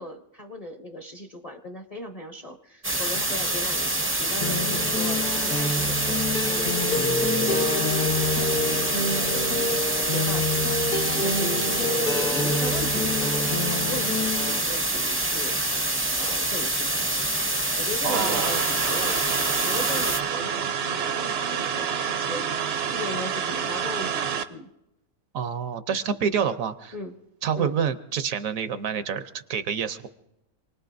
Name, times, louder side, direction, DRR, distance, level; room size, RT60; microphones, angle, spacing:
voice 1, 0.0-17.3 17.8-24.7 26.9-27.2 27.6-27.8, left 1 dB, 35° left, 2 dB, 0.7 m, -38 dB
sound 1, 2.8-20.2, right 2 dB, 15° right, 0.4 m, -26 dB
sound 2, 4.4-14.6, left 2 dB, 65° left, 1.7 m, -27 dB
voice 2, 18.0-18.6 25.3-26.9 27.4-30.1, right 7 dB, 70° right, 11 dB, 1.1 m, -27 dB
sound 3, 18.1-24.4, right 7 dB, 55° right, 0.8 m, -28 dB
27.5 x 19.5 x 2.6 m, 0.91 s
omnidirectional pair, 1.5 m